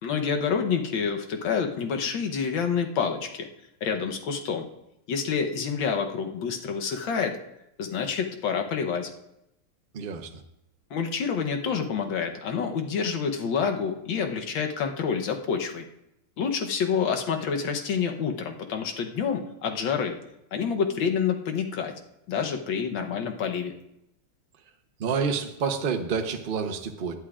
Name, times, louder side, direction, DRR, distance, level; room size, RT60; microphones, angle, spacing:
voice 1, 0.0-3.5 3.8-4.7 5.1-7.4 7.8-9.1 10.9-15.8 16.4-20.2 20.5-21.9 22.3-23.7, left 6 dB, 70° left, 4 dB, 1.7 m, -28 dB
voice 2, 9.9-10.4 25.0-27.1, right 6 dB, 55° right, 5 dB, 0.6 m, -28 dB
18.0 x 11.5 x 2.5 m, 0.84 s
omnidirectional pair, 2.2 m